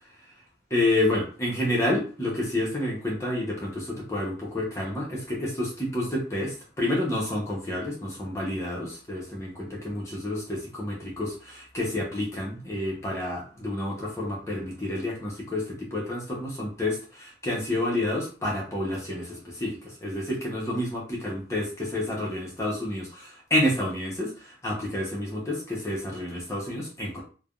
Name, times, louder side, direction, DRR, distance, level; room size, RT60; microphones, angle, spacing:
voice 1, 0.7-27.2, left 1 dB, 15° left, -4 dB, 0.8 m, -29 dB
3.4 x 2.1 x 2.4 m, 0.38 s
head